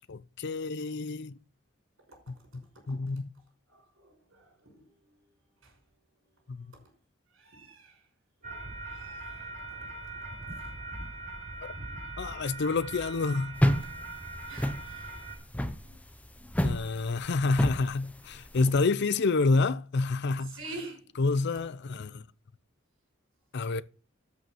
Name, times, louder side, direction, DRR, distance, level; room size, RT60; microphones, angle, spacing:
voice 1, 0.0-1.3 2.9-3.3 11.6-11.7 12.2-13.6 16.6-20.6 21.2-22.2 23.5-23.8, left 3 dB, 60° left, 0.5 m, -28 dB
voice 2, 4.0-4.7 7.4-7.9 8.4-9.6 10.4-10.6 14.5-15.2 15.8-15.9 20.5-21.0, right 2 dB, 75° right, 5.7 m, -46 dB
sound 1, 8.4-15.4, right 2 dB, 40° right, 3.1 m, -41 dB
sound 2, 13.6-18.7, equal, 5° left, 0.8 m, -30 dB
12.5 x 5.7 x 4.5 m
head